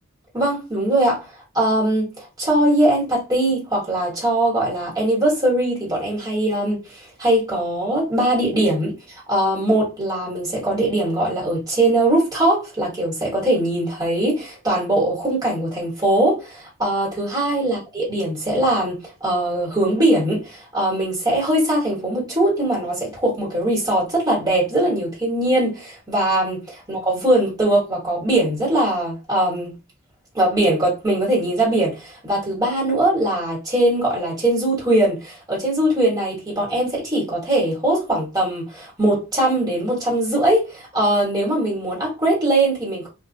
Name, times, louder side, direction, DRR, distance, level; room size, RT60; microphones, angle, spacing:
voice 1, 0.3-1.3 1.5-29.7 30.3-43.1, right 1 dB, 20° right, 1.3 m, -21 dB
2.5 x 2.4 x 2.5 m
head